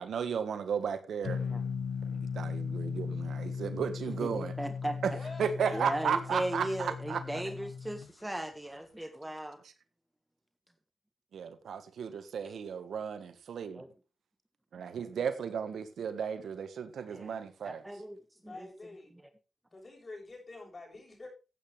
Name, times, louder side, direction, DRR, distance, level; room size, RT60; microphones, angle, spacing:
voice 1, 0.0-1.6 2.1-4.5 5.0-5.1 5.4-7.2 11.3-13.8 14.7-17.8, right 7 dB, 85° right, 11 dB, 1.3 m, -34 dB
sound 1, 1.2-8.1, left 6 dB, 85° left, 0.6 m, -37 dB
voice 2, 4.1-5.0 5.7-9.6 13.7-13.9 17.1-17.3 17.6-18.7, right 1 dB, 10° right, 8 dB, 1.6 m, -37 dB
voice 3, 5.1-6.3 18.3-19.2 19.7-21.3, left 2 dB, 40° left, 1 dB, 7.2 m, -47 dB
15.0 x 8.9 x 3.3 m, 0.31 s
cardioid pair, 60°, 0 cm